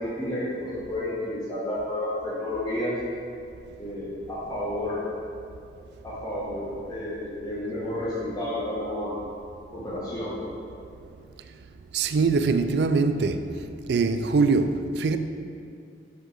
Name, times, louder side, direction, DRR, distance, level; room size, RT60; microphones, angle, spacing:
voice 1, 0.0-2.9 3.8-5.0 6.0-9.1 9.7-10.4, left 1 dB, 20° left, 1.2 m, -31 dB
voice 2, 11.9-13.5 13.9-15.2, right 4 dB, 65° right, 0.3 m, -23 dB
6.3 x 5.0 x 3.9 m
head